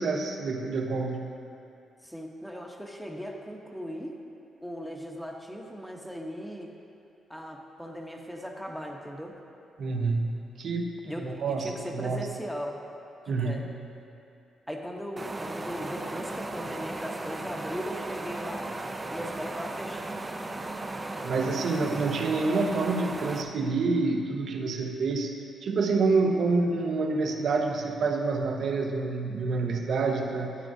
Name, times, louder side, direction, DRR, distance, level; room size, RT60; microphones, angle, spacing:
voice 1, 0.0-1.3 9.8-10.9 11.2-12.3 13.3-13.7 21.2-25.3 25.6-30.6, right 3 dB, 65° right, 3 dB, 0.8 m, -27 dB
voice 2, 2.0-4.2 4.6-6.7 7.3-9.4 11.0-12.8 13.2-13.6 14.7-18.7 19.1-20.0 26.4-26.5, equal, ahead, 1 dB, 0.9 m, -38 dB
sound 1, 15.2-23.4, right 2 dB, 20° right, 0.5 m, -36 dB
12.5 x 9.0 x 2.7 m, 2.7 s
cardioid pair, 105°, 0 cm